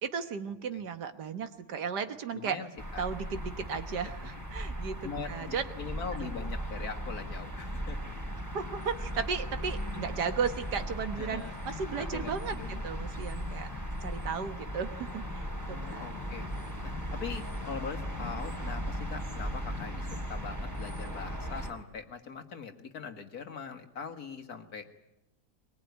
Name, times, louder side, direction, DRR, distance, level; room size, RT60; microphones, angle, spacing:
voice 1, 0.0-2.6 3.0-5.7 6.2-6.3 8.5-13.7 14.0-16.1, right 6 dB, 75° right, 9 dB, 1.9 m, -35 dB
voice 2, 2.3-3.1 4.0-4.1 5.0-8.1 11.2-11.6 12.0-12.9 13.7-13.9 15.7-16.5 16.8-24.9, left 6 dB, 60° left, 7 dB, 2.2 m, -42 dB
sound 1, 2.8-21.7, equal, 10° right, 4.0 m, -37 dB
22.0 x 21.5 x 9.5 m, 0.92 s
omnidirectional pair, 1.8 m